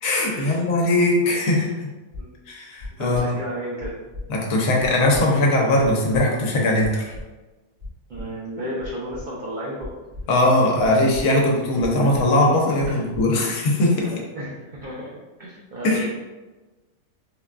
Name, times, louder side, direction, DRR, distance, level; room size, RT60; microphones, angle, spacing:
voice 1, 0.0-1.9 2.5-3.2 4.3-7.1 10.3-14.1 15.8-16.1, left 1 dB, 75° left, -1 dB, 1.1 m, -20 dB
sound 1, 2.1-2.2 2.8-3.2 3.8-4.2 4.8-5.2 5.8-6.2 6.8-7.2 7.8-8.2 8.8-9.2 9.8-10.2 10.8-11.2 11.8-12.2 12.8-13.2, left 2 dB, 65° right, 1.4 m, -35 dB
voice 2, 2.2-2.5 3.0-4.0 8.1-9.9 12.9-13.0 14.0-16.1, right 1 dB, 85° right, -6 dB, 0.4 m, -33 dB
3.7 x 2.2 x 2.4 m, 1.2 s
omnidirectional pair, 1.5 m